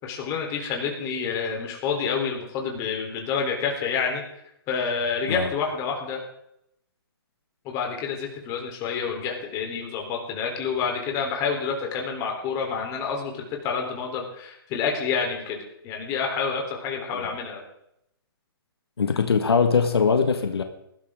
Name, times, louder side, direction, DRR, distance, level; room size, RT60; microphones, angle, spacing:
voice 1, 0.0-4.2 4.7-6.2 7.6-17.6, left 6 dB, 25° left, 1 dB, 3.7 m, -28 dB
voice 2, 19.0-20.6, left 5 dB, 85° left, 6 dB, 1.8 m, -21 dB
20.0 x 13.0 x 3.8 m, 0.78 s
hypercardioid pair, 145°, 13 cm